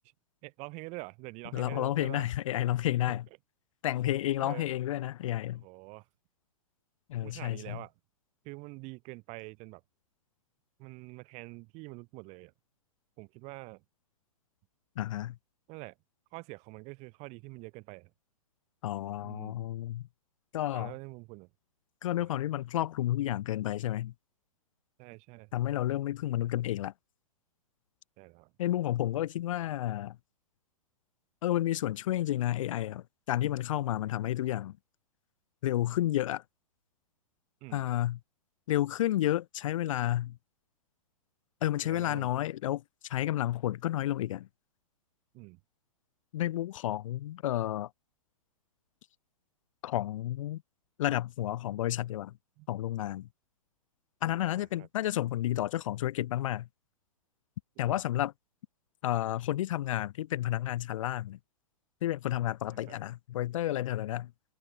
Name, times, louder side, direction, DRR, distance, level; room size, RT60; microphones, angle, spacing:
voice 1, 0.4-2.3 3.1-3.2 4.4-4.7 5.6-6.1 7.2-7.9 8.4-9.8 10.8-12.5 13.2-13.8 15.7-16.0 16.3-18.1 19.2-19.6 20.7-21.5 22.2-22.3 25.0-25.5 28.2-28.5 37.6-37.9 41.8-42.3 45.3-45.6 52.6-52.7 54.6-54.9 57.9-58.0 62.7-63.0, right 27 dB, 35° right, 1.8 m, -45 dB
voice 2, 1.5-3.2 3.8-5.6 7.1-7.8 15.0-15.4 18.8-20.1 20.5-20.9 22.0-24.1 25.5-26.9 28.6-30.2 31.4-34.8 35.6-36.4 37.7-38.2 38.7-40.4 41.6-44.5 46.3-47.9 49.8-50.6 51.0-52.3 52.7-53.3 54.2-56.7 57.8-58.3 59.0-61.4 62.0-64.3, left 13 dB, 60° left, 0.4 m, -31 dB
hypercardioid pair, 120°, 19 cm